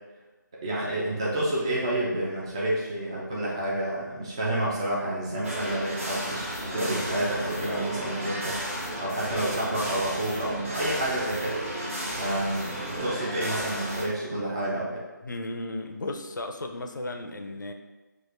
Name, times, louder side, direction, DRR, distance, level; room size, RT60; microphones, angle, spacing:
voice 1, 0.6-8.6 9.0-11.6 12.2-15.0, right 1 dB, 15° right, -6 dB, 0.4 m, -29 dB
sound 1, 5.4-14.1, right 1 dB, 40° right, 0.8 m, -33 dB
voice 2, 15.2-17.7, left 2 dB, 70° left, 4 dB, 0.5 m, -35 dB
6.3 x 2.5 x 2.5 m, 1.2 s
figure-of-eight pair, 160°, 11 cm